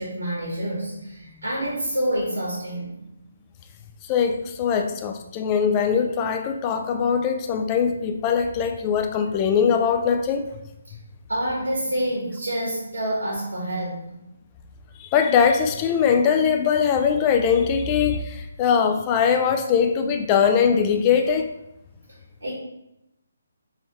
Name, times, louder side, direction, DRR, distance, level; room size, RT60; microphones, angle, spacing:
voice 1, 0.0-2.9 11.3-14.0 22.4-22.5, right 1 dB, 80° right, -6 dB, 1.4 m, -27 dB
voice 2, 4.1-10.5 15.0-21.5, left 7 dB, 25° left, 5 dB, 0.3 m, -21 dB
3.9 x 2.8 x 3.0 m, 0.87 s
figure-of-eight pair, 140°, 0 cm